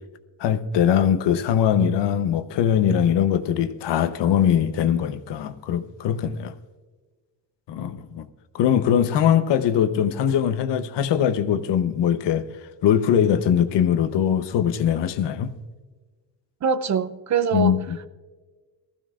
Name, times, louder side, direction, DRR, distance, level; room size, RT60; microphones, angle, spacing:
voice 1, 0.4-6.5 7.7-8.3 8.5-12.4 12.8-15.5 17.5-18.1, left 9 dB, 65° left, 0.9 m, -21 dB
voice 2, 16.6-17.7, right 6 dB, 40° right, 0.6 m, -23 dB
19.5 x 14.5 x 2.5 m
cardioid pair, 115°, 45 cm